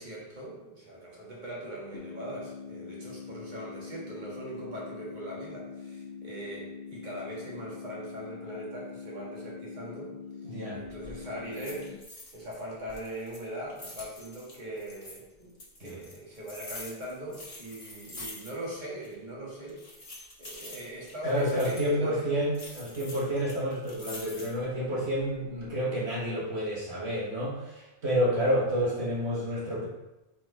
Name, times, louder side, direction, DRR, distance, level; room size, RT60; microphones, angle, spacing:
voice 1, 0.0-10.1 10.4-11.9 12.3-15.5 15.8-20.0 20.4-22.3, right 1 dB, 45° right, -5 dB, 1.6 m, -40 dB
sound 1, 1.9-11.9, left 6 dB, 60° left, 0.7 m, -43 dB
voice 2, 10.5-10.9 15.8-15.9 21.2-29.9, equal, 75° right, -6 dB, 1.6 m, -29 dB
sound 2, 10.9-11.2 11.5-12.6 12.9-15.2 15.6-18.8 19.0-19.1 19.7-21.9 22.5-24.7 25.2-25.7, left 2 dB, 35° left, 1.4 m, -46 dB
4.5 x 4.3 x 4.8 m, 0.98 s
omnidirectional pair, 1.1 m